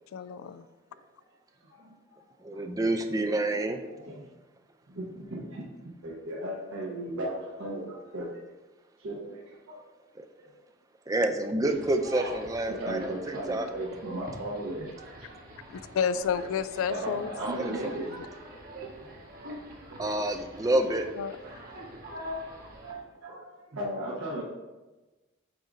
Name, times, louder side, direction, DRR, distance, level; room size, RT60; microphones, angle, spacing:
voice 1, 0.1-0.6 15.9-17.3 17.8-17.9 21.2-21.4, left 7 dB, 80° left, 14 dB, 0.3 m, -30 dB
voice 2, 1.6-2.6 3.5-3.6 3.9-4.2 4.9-5.7 6.0-8.4 9.0-9.8 10.4-10.5 12.7-14.9 15.2-15.3 16.9-18.1 18.7-20.1 20.7-20.8 21.7-22.5 22.8-24.4, right 1 dB, 80° right, -5 dB, 1.0 m, -37 dB
voice 3, 2.4-3.8 10.2-10.3 11.1-13.7 17.4-18.1 20.0-21.1, right 1 dB, 15° right, 6 dB, 0.3 m, -28 dB
sound 1, 11.6-22.9, right 1 dB, 45° right, 1.0 m, -46 dB
7.7 x 2.6 x 4.9 m, 1.2 s
head